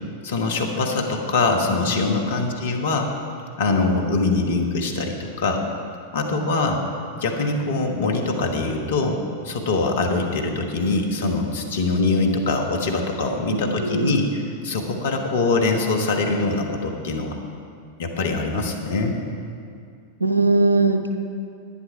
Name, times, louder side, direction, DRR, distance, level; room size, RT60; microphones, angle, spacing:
voice 1, 0.2-3.1 3.6-5.6 6.1-6.8 7.2-9.2 9.4-17.4 18.0-19.2, left 3 dB, 60° left, 2 dB, 1.4 m, -23 dB
voice 2, 13.5-14.3 20.2-21.0, right 3 dB, 85° right, 6 dB, 0.7 m, -20 dB
11.5 x 9.9 x 4.7 m, 2.4 s
figure-of-eight pair, 90°, 0 cm